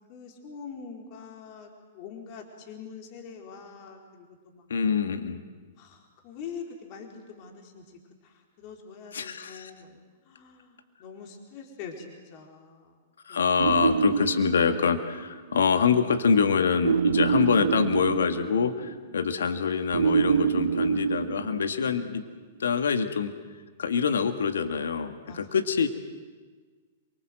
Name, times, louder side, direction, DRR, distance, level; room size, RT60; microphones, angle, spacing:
voice 1, 0.1-4.7 5.8-12.9 13.3-13.5 25.1-25.5, left 6 dB, 45° left, 1 dB, 4.3 m, -44 dB
voice 2, 4.7-5.4 9.1-9.7 13.3-22.2 22.6-23.3 23.8-25.9, left 6 dB, 75° left, 7 dB, 1.9 m, -25 dB
sound 1, 13.6-15.3 16.8-18.9 19.9-22.1, right 6 dB, 75° right, 1.2 m, -26 dB
27.0 x 24.0 x 7.8 m, 1.4 s
figure-of-eight pair, 110°, 0 cm